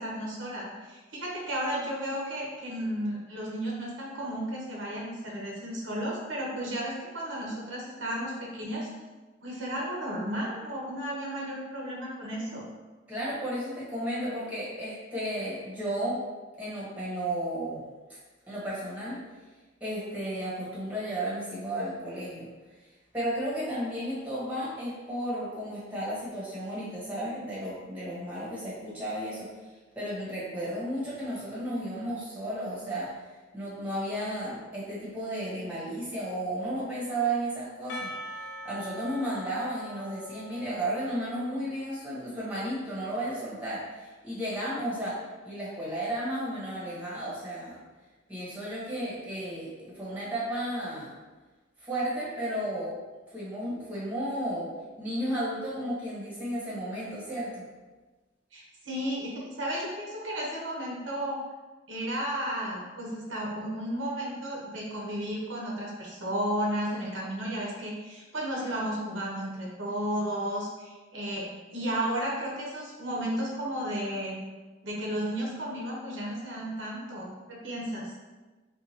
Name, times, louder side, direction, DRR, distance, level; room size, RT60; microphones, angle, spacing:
voice 1, 0.0-8.9 9.4-12.6 58.5-61.4 61.9-71.5 71.7-74.4 74.8-77.3 77.6-78.1, equal, 80° right, -4 dB, 1.0 m, -33 dB
voice 2, 13.1-16.2 16.6-17.8 18.1-18.2 18.5-19.2 19.8-22.5 23.1-29.5 29.9-33.1 33.5-38.1 38.6-45.2 45.4-47.8 48.3-51.2 51.8-52.9 53.3-54.7 55.0-57.7, right 1 dB, 10° right, -8 dB, 1.2 m, -33 dB
Percussion, 37.9-41.8, left 1 dB, 60° left, 0.5 m, -43 dB
4.5 x 2.5 x 2.9 m, 1.2 s
head